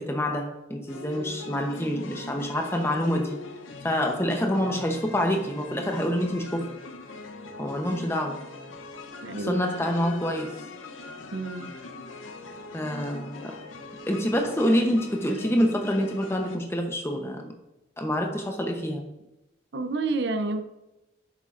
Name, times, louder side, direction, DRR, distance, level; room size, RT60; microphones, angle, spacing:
voice 1, 0.0-3.4 3.8-6.7 7.6-8.5 9.4-10.6 12.7-13.6 14.1-17.6 18.0-19.0, equal, 15° left, 3 dB, 0.8 m, -27 dB
sound 1, 0.9-16.6, left 3 dB, 85° left, 0.9 m, -41 dB
voice 2, 9.2-9.6 11.3-11.7 19.7-20.6, right 3 dB, 60° right, 8 dB, 0.6 m, -29 dB
10.5 x 7.3 x 2.5 m, 0.95 s
head